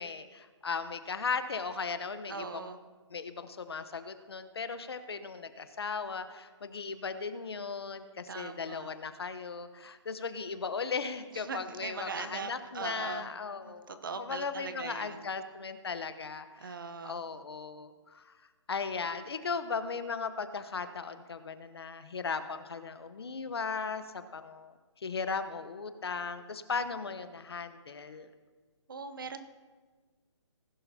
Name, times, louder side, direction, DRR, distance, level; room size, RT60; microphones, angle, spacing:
voice 1, 0.0-2.7 3.1-16.8 17.0-18.3 18.7-28.3, left 5 dB, 55° left, 10 dB, 0.9 m, -37 dB
voice 2, 2.3-2.8 8.3-8.9 11.3-13.3 13.6-15.2 16.6-17.2 28.9-29.5, right 4 dB, 45° right, 10 dB, 0.9 m, -40 dB
19.0 x 11.5 x 2.8 m, 1.4 s
hypercardioid pair, 175°, 16 cm